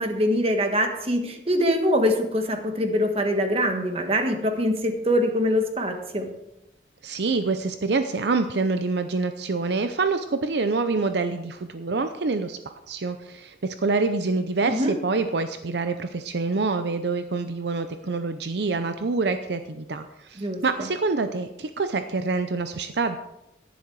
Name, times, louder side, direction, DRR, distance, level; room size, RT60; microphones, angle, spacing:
voice 1, 0.0-6.3 14.6-14.9 20.4-20.9, equal, 30° right, 5 dB, 1.4 m, -24 dB
voice 2, 7.0-23.2, right 3 dB, 65° right, 9 dB, 0.6 m, -26 dB
11.5 x 10.5 x 4.7 m, 0.88 s
head